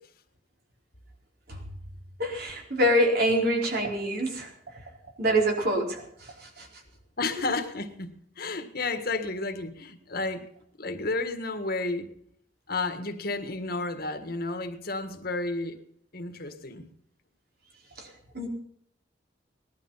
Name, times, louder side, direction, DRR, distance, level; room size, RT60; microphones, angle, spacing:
voice 1, 2.2-4.5 5.2-6.7 18.0-18.1 18.3-18.5, equal, 55° right, 4.6 m, -26 dB
voice 2, 7.2-10.4 10.8-12.1 12.7-15.8 16.1-16.9, left 3 dB, 55° left, 1.8 m, -32 dB
19.5 x 12.0 x 5.7 m
head